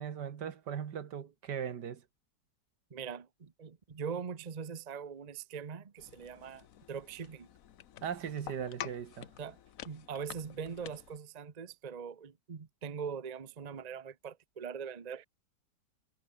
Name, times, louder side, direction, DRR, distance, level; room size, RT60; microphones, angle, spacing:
voice 1, 0.0-2.0 8.0-9.3, right 8 dB, 75° right, 2.0 m, -38 dB
voice 2, 2.9-7.5 9.4-9.6 9.8-15.3, right 6 dB, 30° right, 0.8 m, -42 dB
sound 1, 6.0-11.2, left 10 dB, 55° left, 1.2 m, -49 dB
omnidirectional pair, 1.9 m